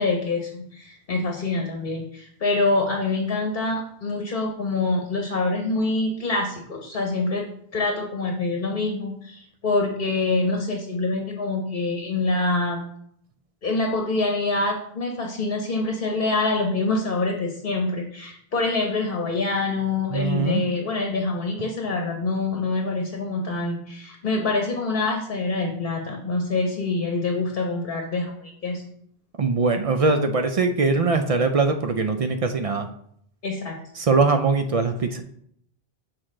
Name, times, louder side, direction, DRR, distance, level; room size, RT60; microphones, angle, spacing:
voice 1, 0.0-7.4 7.7-12.8 13.6-28.8 33.4-33.8, left 3 dB, 55° left, 1 dB, 1.0 m, -25 dB
voice 2, 20.1-20.7 29.4-32.9 33.9-35.2, right 4 dB, 50° right, 7 dB, 0.4 m, -22 dB
6.4 x 4.4 x 3.7 m, 0.69 s
omnidirectional pair, 1.1 m